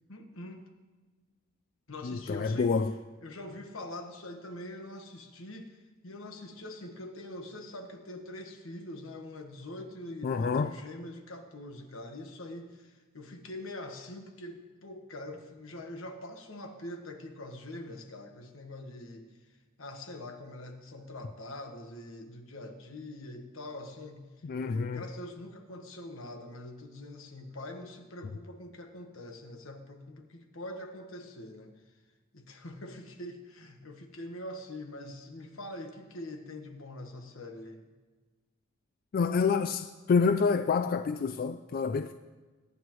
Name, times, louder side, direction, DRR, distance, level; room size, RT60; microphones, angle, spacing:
voice 1, 0.1-0.6 1.9-2.8 3.2-19.3 19.8-24.2 24.7-31.8 32.3-37.8, left 1 dB, 85° left, 1.4 m, -44 dB
voice 2, 2.0-2.9 10.2-10.7 24.4-25.0 39.1-42.1, left 5 dB, 45° left, 0.3 m, -28 dB
22.0 x 9.5 x 3.1 m
head